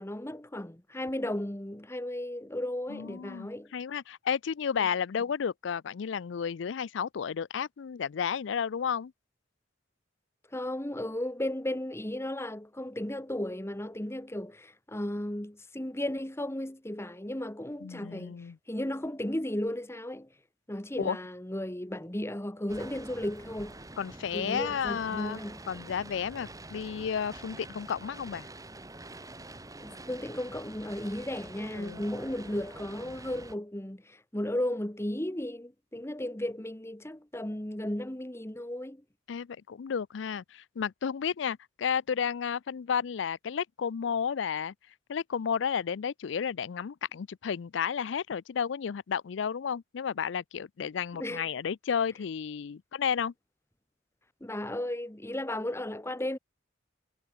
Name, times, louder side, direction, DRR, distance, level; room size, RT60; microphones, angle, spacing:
voice 1, 0.0-3.7 10.5-18.4 18.7-20.3 20.7-23.8 24.3-25.6 29.7-39.0 51.2-51.5 54.4-56.4, left 1 dB, 15° left, 1.5 m, -35 dB
voice 2, 2.9-9.1 17.8-18.6 21.0-21.2 24.0-25.4 25.7-28.5 31.7-32.0 39.3-44.7 45.1-53.3, left 7 dB, 70° left, 0.4 m, -32 dB
sound 1, 22.7-33.5, right 2 dB, 20° right, 3.1 m, -46 dB
head